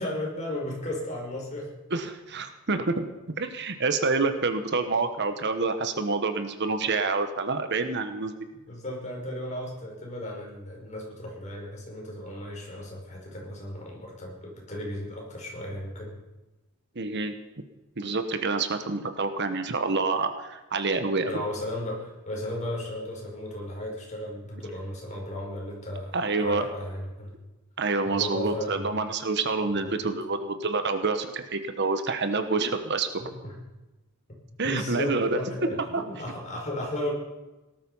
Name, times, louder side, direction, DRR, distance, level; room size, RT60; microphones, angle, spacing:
voice 1, 0.0-1.7 8.7-16.1 21.3-27.3 28.1-28.9 29.8-30.2 33.2-33.5 34.6-37.1, left 1 dB, 30° left, -2 dB, 5.4 m, -35 dB
voice 2, 1.9-3.1 3.4-8.3 16.9-17.4 18.0-21.4 26.1-26.7 27.8-33.1 34.6-35.4 35.9-36.0, right 3 dB, 50° right, 8 dB, 1.2 m, -27 dB
18.5 x 12.5 x 5.6 m, 1.1 s
head